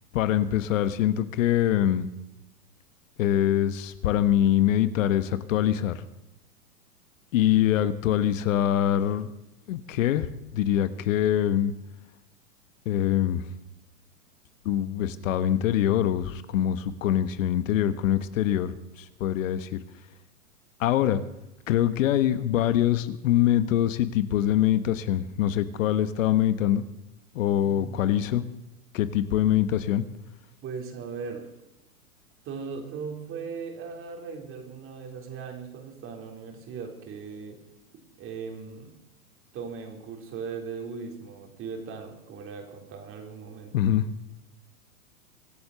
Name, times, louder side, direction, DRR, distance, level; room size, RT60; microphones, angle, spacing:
voice 1, 0.1-2.1 3.2-6.0 7.3-9.3 9.7-10.3 10.5-11.7 12.8-13.4 14.6-19.8 20.8-21.2 21.7-26.8 27.3-28.4 28.9-30.0 43.7-44.0, left 11 dB, 60° left, 14 dB, 1.2 m, -24 dB
voice 2, 27.6-28.2 30.6-31.5 32.4-37.6 38.2-38.9 39.5-43.7, right 5 dB, 30° right, 4 dB, 3.8 m, -38 dB
24.5 x 8.2 x 6.8 m, 0.91 s
hypercardioid pair, 130°, 44 cm